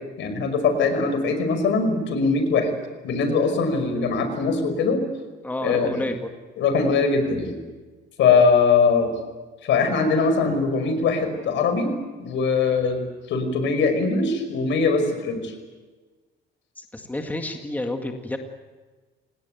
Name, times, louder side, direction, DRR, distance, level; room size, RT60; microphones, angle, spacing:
voice 1, 0.2-2.7 3.0-5.0 5.6-6.0 6.6-7.6 8.2-9.1 9.6-11.9 12.2-13.0 13.3-15.5, left 4 dB, 65° left, 9 dB, 5.3 m, -21 dB
voice 2, 5.4-6.3 16.8-18.4, left 1 dB, 10° left, 4 dB, 1.9 m, -30 dB
28.0 x 18.5 x 9.3 m, 1.3 s
cardioid pair, 150°, 20 cm